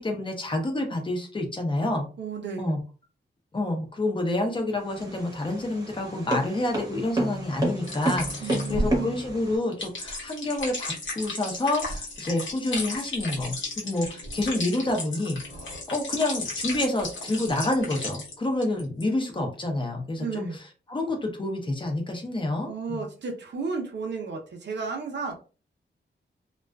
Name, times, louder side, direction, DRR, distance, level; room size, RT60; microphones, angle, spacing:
voice 1, 0.0-2.0 2.6-2.8 3.5-15.4 15.9-20.5 20.9-23.0, left 2 dB, 25° left, 3 dB, 0.7 m, -28 dB
voice 2, 2.2-2.8 8.4-9.2 20.2-20.6 22.7-25.4, right 4 dB, 60° right, 3 dB, 0.7 m, -33 dB
sound 1, 4.8-9.6, right 1 dB, 20° right, 0.9 m, -30 dB
sound 2, 7.8-18.3 18.6-19.0, left 2 dB, 80° left, 0.9 m, -34 dB
2.3 x 2.3 x 2.2 m, 0.36 s
wide cardioid pair, 115°, 20 cm